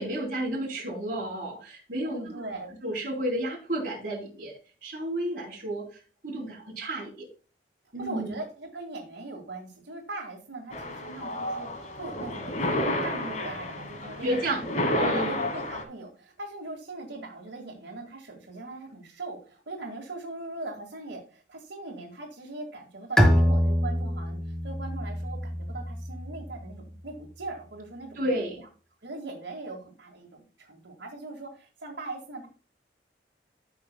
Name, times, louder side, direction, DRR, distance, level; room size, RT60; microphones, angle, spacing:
voice 1, 0.0-4.5 4.8-5.8 6.2-7.3 7.9-8.3 14.2-14.7 14.9-15.5 28.2-28.6, right 1 dB, 50° right, -2 dB, 3.8 m, -32 dB
voice 2, 2.0-2.7 8.0-24.4 24.6-28.6 29.0-32.5, right 2 dB, 90° right, -4 dB, 2.0 m, -40 dB
sound 1, 10.7-15.8, left 1 dB, 40° left, 1.3 m, -30 dB
Bowed string instrument, 23.2-26.6, equal, 5° left, 1.2 m, -25 dB
13.5 x 5.8 x 2.3 m, 0.36 s
head